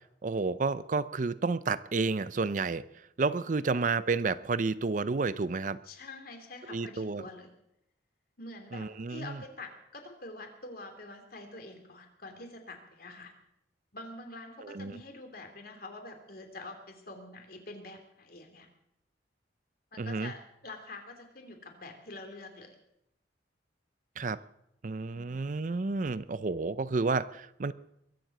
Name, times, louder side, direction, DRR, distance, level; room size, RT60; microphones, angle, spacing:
voice 1, 0.2-5.8 6.7-7.3 8.7-9.4 14.6-15.0 20.0-20.3 24.2-24.4 24.8-27.7, right 4 dB, 45° right, 15 dB, 0.5 m, -31 dB
voice 2, 5.8-7.5 8.4-13.3 13.9-18.7 19.9-22.7, left 2 dB, 50° left, 4 dB, 3.0 m, -46 dB
22.5 x 7.7 x 7.9 m, 0.80 s
head